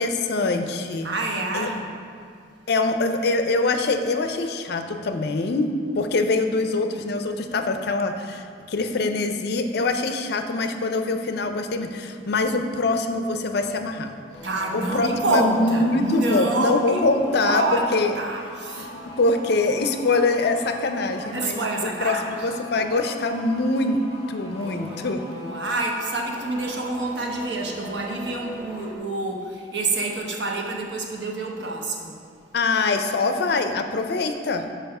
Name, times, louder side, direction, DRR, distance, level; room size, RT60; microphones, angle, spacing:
voice 1, 0.0-1.1 1.5-1.7 2.7-14.1 14.7-18.1 18.8-18.9 19.2-21.6 22.0-24.0 24.3-25.2 32.5-34.6, left 3 dB, 60° left, 7 dB, 0.5 m, -24 dB
voice 2, 1.0-1.9 14.4-17.0 17.4-17.8 18.2-18.9 21.3-22.3 24.4-25.1 25.3-32.2, right 2 dB, 70° right, 0 dB, 0.9 m, -27 dB
sound 1, 14.3-29.0, left 1 dB, 35° left, 1.2 m, -41 dB
5.7 x 4.7 x 5.4 m, 2.3 s
head